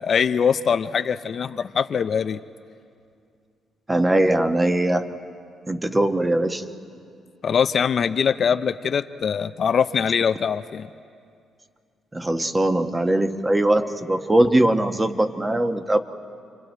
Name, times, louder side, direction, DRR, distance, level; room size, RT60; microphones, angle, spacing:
voice 1, 0.0-2.4 7.4-10.9, left 7 dB, 50° left, 11 dB, 0.5 m, -22 dB
voice 2, 3.9-5.1 5.7-6.6 12.1-16.0, right 1 dB, 15° right, 7 dB, 1.2 m, -21 dB
29.5 x 25.0 x 4.5 m, 2.3 s
cardioid pair, 90°, 0 cm